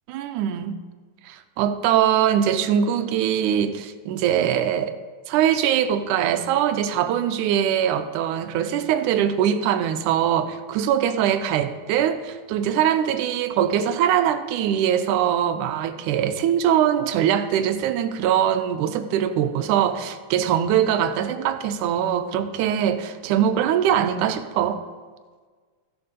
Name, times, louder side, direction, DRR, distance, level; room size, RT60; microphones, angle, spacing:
voice 1, 0.1-0.8 1.2-4.9 5.3-24.8, right 9 dB, 85° right, 10 dB, 2.1 m, -22 dB
14.5 x 6.9 x 5.2 m, 1.5 s
omnidirectional pair, 3.6 m